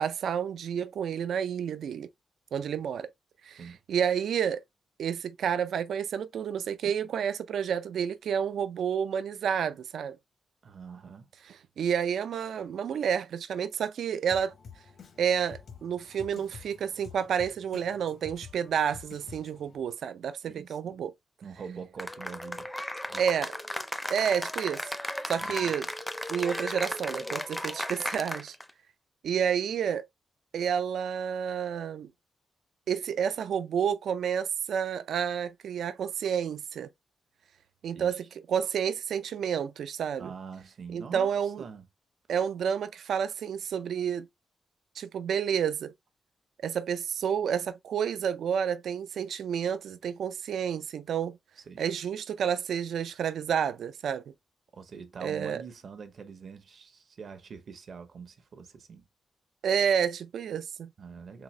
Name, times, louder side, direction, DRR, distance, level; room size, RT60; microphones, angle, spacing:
voice 1, 0.0-2.1 2.5-3.1 3.4-3.6 3.9-4.6 5.0-10.2 11.5-14.5 15.2-21.1 23.2-23.5 24.1-24.8 25.3-25.9 26.3-28.6 29.2-30.1 30.5-32.1 32.9-36.9 37.8-40.3 40.9-41.6 42.3-44.3 45.0-45.9 46.6-51.4 51.8-54.2 55.2-55.6 59.6-60.9, right 8 dB, 85° right, 0.4 m, -30 dB
voice 2, 10.6-11.3 20.4-21.0 21.4-22.7 23.1-23.2 25.4-25.7 27.2-27.3 37.9-38.2 40.2-41.9 51.6-51.8 54.7-59.1 61.0-61.4, right 6 dB, 60° right, 0.8 m, -44 dB
Drum kit, 14.3-19.8, left 6 dB, 65° left, 0.7 m, -49 dB
Cheering / Applause, 22.0-28.7, left 1 dB, 10° left, 0.4 m, -35 dB
3.8 x 2.9 x 3.1 m
wide cardioid pair, 115°, 0 cm